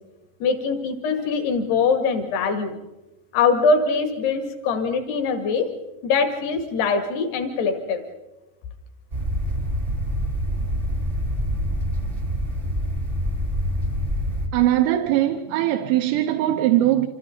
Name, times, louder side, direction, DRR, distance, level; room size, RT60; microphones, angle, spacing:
voice 1, 0.4-2.8 3.3-5.7 6.0-8.0, left 4 dB, 60° left, 3.8 m, -22 dB
sound 1, 9.1-14.5, equal, 35° right, 0.8 m, -26 dB
voice 2, 14.5-17.1, right 13 dB, 85° right, 3.6 m, -20 dB
29.0 x 26.0 x 3.9 m
omnidirectional pair, 5.9 m